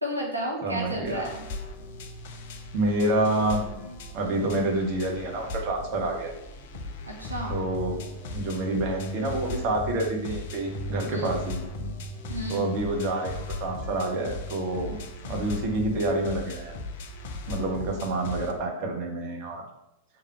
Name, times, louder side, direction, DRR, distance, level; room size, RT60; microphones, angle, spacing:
voice 1, 0.0-1.4 7.0-7.6 11.1-11.3 12.3-12.7, equal, 85° right, -1 dB, 0.8 m, -32 dB
voice 2, 0.6-1.3 2.7-3.6 4.1-6.4 7.5-8.0 8.3-11.6 12.5-15.0 15.2-16.8 17.5-19.6, right 2 dB, 45° right, 1 dB, 1.0 m, -28 dB
sound 1, 0.8-18.5, right 2 dB, 5° right, 1.4 m, -42 dB
sound 2, 1.1-18.5, left 3 dB, 55° left, 0.5 m, -39 dB
3.5 x 3.0 x 4.7 m, 0.85 s
figure-of-eight pair, 90°, 0 cm